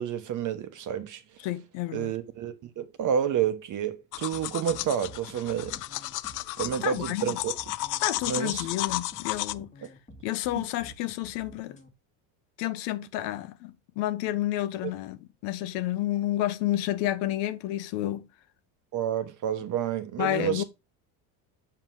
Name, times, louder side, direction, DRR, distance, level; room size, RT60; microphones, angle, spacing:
voice 1, 0.0-1.2 1.9-5.8 6.6-7.5 8.3-8.7 14.8-14.9 18.9-20.6, right 9 dB, 45° right, 1.1 m, -29 dB
voice 2, 1.4-2.1 6.6-7.4 8.0-9.7 10.2-11.8 12.6-18.3 20.2-20.6, left 14 dB, 75° left, 1.0 m, -30 dB
sound 1, 4.1-9.5, left 17 dB, 45° left, 0.4 m, -33 dB
sound 2, 4.3-11.9, right 1 dB, 15° left, 1.4 m, -49 dB
6.7 x 4.7 x 3.7 m
cardioid pair, 125°, 44 cm